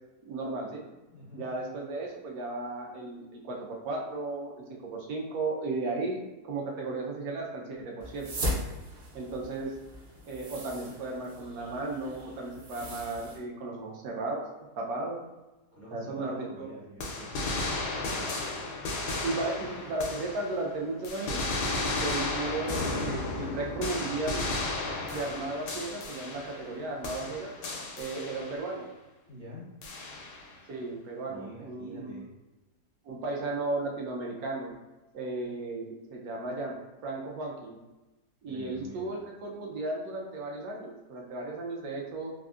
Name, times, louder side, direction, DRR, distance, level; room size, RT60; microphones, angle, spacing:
voice 1, 0.2-0.8 1.3-8.3 9.1-9.7 10.3-14.4 14.8-15.2 15.9-16.7 17.3-17.4 19.2-21.4 22.0-24.4 25.1-27.5 28.0-28.9 30.7-32.3 33.0-34.7 35.1-36.7 37.0-37.8 38.4-42.3, right 2 dB, 70° right, -2 dB, 1.0 m, -35 dB
voice 2, 1.1-1.4 15.7-18.4 29.3-29.7 31.3-32.3 38.4-39.1, equal, 45° left, -8 dB, 0.6 m, -46 dB
sound 1, 8.0-13.4, equal, 55° right, 0.7 m, -38 dB
sound 2, 17.0-20.7 21.0-26.8 27.0-28.7 29.8-30.5, left 2 dB, 85° left, 1.2 m, -34 dB
3.6 x 2.4 x 2.3 m, 1.1 s
omnidirectional pair, 1.7 m